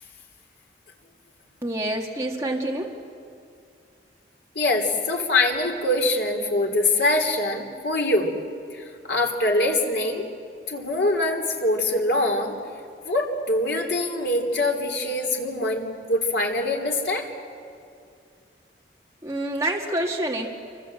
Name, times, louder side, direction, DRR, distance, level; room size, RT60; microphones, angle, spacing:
voice 1, 1.6-2.9 19.2-20.5, right 1 dB, 15° right, -1 dB, 2.1 m, -27 dB
voice 2, 4.5-8.3 8.7-10.3 10.7-12.6 13.0-17.3, left 2 dB, 70° left, 1 dB, 3.3 m, -24 dB
28.5 x 25.0 x 7.8 m, 2.4 s
head